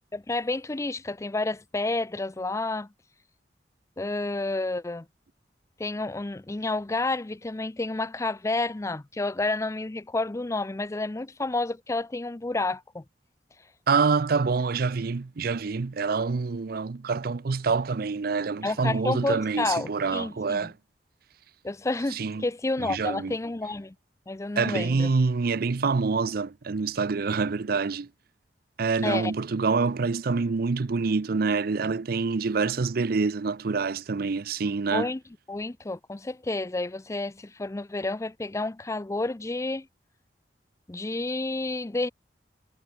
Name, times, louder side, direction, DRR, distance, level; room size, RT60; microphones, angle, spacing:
voice 1, 0.1-2.9 4.0-5.1 5.8-13.0 18.6-20.6 21.6-23.9 24.3-25.1 29.0-29.3 34.9-35.2 35.5-39.9 40.9-42.1, left 2 dB, 15° left, 0.5 m, -30 dB
voice 2, 13.9-20.7 22.1-22.5 22.8-23.4 24.6-28.1 28.8-35.1, right 4 dB, 55° right, 0.5 m, -26 dB
head